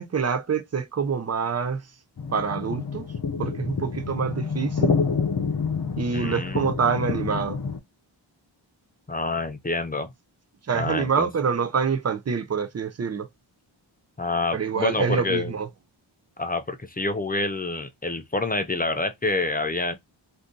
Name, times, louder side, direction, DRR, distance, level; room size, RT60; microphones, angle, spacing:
voice 1, 0.0-1.8 2.3-3.1 3.4-4.9 6.0-7.6 10.7-13.3 14.5-15.7, right 6 dB, 35° right, 0.5 m, -26 dB
sound 1, 2.2-7.8, left 5 dB, 45° left, 0.7 m, -28 dB
voice 2, 6.1-6.7 9.1-10.1 10.7-11.3 14.2-15.5 16.4-20.0, left 2 dB, 20° left, 0.3 m, -27 dB
2.6 x 2.6 x 3.6 m
wide cardioid pair, 115°, 47 cm